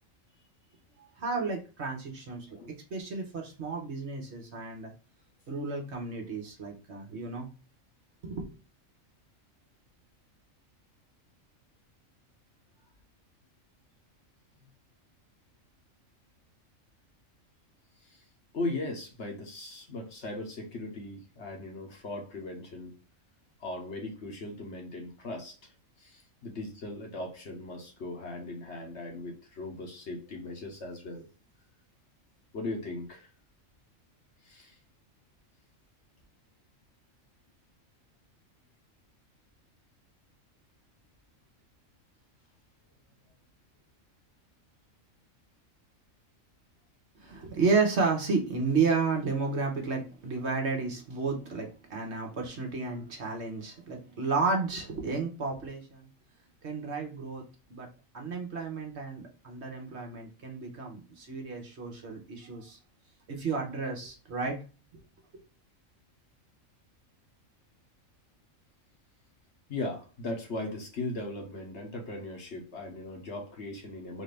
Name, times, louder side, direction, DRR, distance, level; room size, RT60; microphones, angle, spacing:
voice 1, 1.2-2.5 2.9-4.9 5.5-7.5 8.2-8.5 47.2-56.1 56.6-57.4 57.7-57.9 58.1-62.8 63.3-64.6 64.9-65.0, right 4 dB, 55° right, 1 dB, 1.3 m, -32 dB
voice 2, 18.5-22.9 23.6-25.7 26.0-31.2 32.5-33.3 34.4-34.8 69.7-74.2, left 2 dB, 60° left, 2 dB, 1.3 m, -38 dB
4.2 x 2.7 x 3.3 m, 0.34 s
omnidirectional pair, 1.4 m